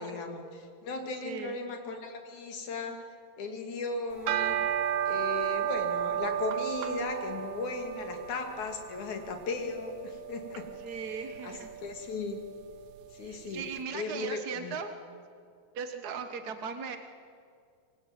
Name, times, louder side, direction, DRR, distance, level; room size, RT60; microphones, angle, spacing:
voice 1, 0.0-3.1 3.4-4.6 5.0-10.6 10.9-12.4 13.1-13.7 13.9-14.8, left 3 dB, 65° left, 4 dB, 3.8 m, -37 dB
voice 2, 1.2-1.6 10.8-11.7 13.2-14.9 15.7-17.0, right 6 dB, 60° right, 7 dB, 1.0 m, -38 dB
sound 1, 4.1-13.5, right 10 dB, 85° right, 2.6 m, -34 dB
26.5 x 23.0 x 8.9 m, 2.3 s
omnidirectional pair, 3.7 m